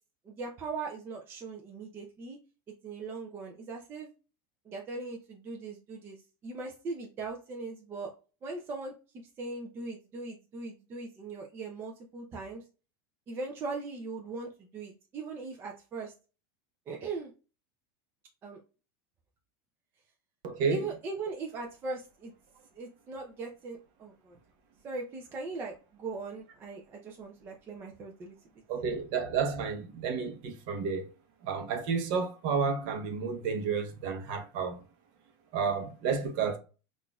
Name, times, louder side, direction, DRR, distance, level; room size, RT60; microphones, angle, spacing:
voice 1, 0.2-2.4 2.8-4.1 4.6-8.1 8.4-8.9 9.4-12.6 13.3-16.1 16.9-17.3 18.4-18.6 20.7-22.3 22.7-24.4 24.8-28.4, right 3 dB, 15° right, 0.4 m, -39 dB
voice 2, 20.4-20.8 28.7-31.1 31.4-34.8 35.5-36.6, right 5 dB, 40° right, 0.8 m, -31 dB
5.8 x 2.4 x 2.3 m
supercardioid pair, 175°, 12 cm